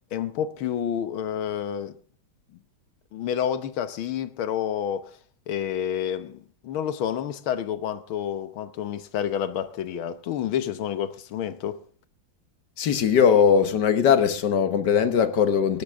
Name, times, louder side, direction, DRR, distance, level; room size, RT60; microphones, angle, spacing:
voice 1, 0.1-2.0 3.1-5.2 5.5-11.8, left 9 dB, 75° left, 1.9 m, -29 dB
voice 2, 12.8-15.8, left 7 dB, 60° left, 1.6 m, -20 dB
19.5 x 12.0 x 3.6 m
omnidirectional pair, 2.3 m